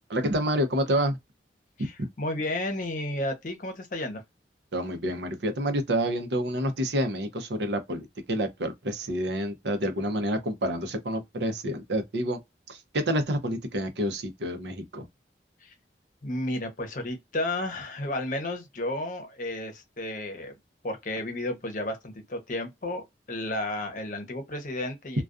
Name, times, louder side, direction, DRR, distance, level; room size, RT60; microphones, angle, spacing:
voice 1, 0.1-1.2 4.7-12.4 12.7-15.1, right 1 dB, 80° right, 0.6 m, -28 dB
voice 2, 1.8-4.2 15.6-15.7 16.2-20.5 20.8-25.2, left 1 dB, 45° left, 0.7 m, -32 dB
2.3 x 2.2 x 2.4 m
head